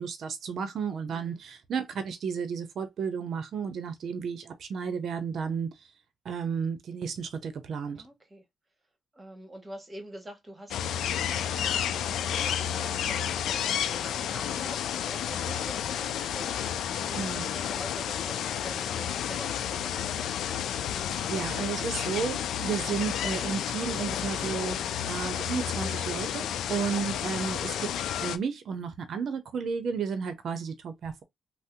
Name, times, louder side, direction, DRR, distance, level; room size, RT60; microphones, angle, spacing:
voice 1, 0.0-5.7 6.2-8.0 17.1-17.5 21.1-27.9 28.2-31.2, right 6 dB, 60° right, 0.6 m, -33 dB
voice 2, 7.9-8.4 9.1-20.1, right 1 dB, 20° right, 1.2 m, -46 dB
sound 1, 10.7-28.4, left 9 dB, 75° left, 0.4 m, -31 dB
2.7 x 2.0 x 3.6 m
cardioid pair, 90°, 0 cm